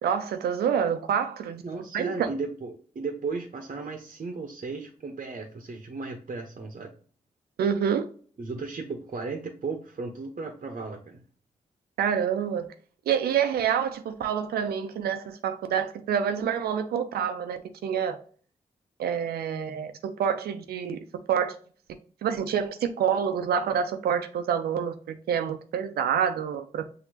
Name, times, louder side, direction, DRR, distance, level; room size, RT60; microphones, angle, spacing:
voice 1, 0.0-1.6 1.9-2.3 7.6-8.1 12.0-12.7 13.1-18.2 19.0-21.0 21.3-21.6 21.9-26.9, right 8 dB, 80° right, 0.6 m, -27 dB
voice 2, 1.6-6.9 8.4-11.2, right 4 dB, 50° right, 0.9 m, -35 dB
6.0 x 2.8 x 2.8 m
supercardioid pair, 40°, 16 cm